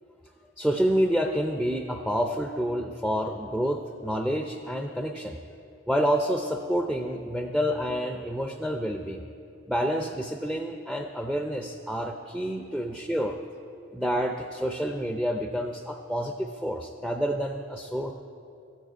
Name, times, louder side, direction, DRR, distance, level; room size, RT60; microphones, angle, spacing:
voice 1, 0.6-5.4 5.9-9.2 9.7-13.4 13.9-18.1, equal, ahead, 4 dB, 0.4 m, -28 dB
13.0 x 7.5 x 9.3 m, 2.7 s
head